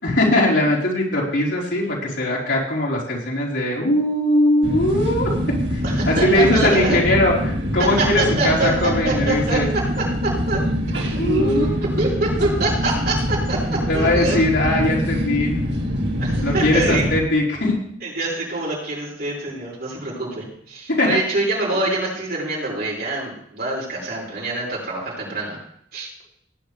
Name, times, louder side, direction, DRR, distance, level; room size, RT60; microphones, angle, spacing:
voice 1, 0.0-5.3 5.7-9.7 11.2-11.8 13.9-15.6 16.4-17.7 21.0-21.1, left 1 dB, 75° left, -5 dB, 4.5 m, -20 dB
sound 1, 4.6-17.2, equal, 85° right, 2.2 m, -24 dB
voice 2, 5.8-7.0 7.8-9.6 10.0-10.6 10.9-11.7 12.0-14.4 16.2-17.1 18.0-25.6 25.9-26.1, right 2 dB, 60° right, -5 dB, 6.2 m, -25 dB
18.0 x 10.0 x 3.5 m, 0.67 s
head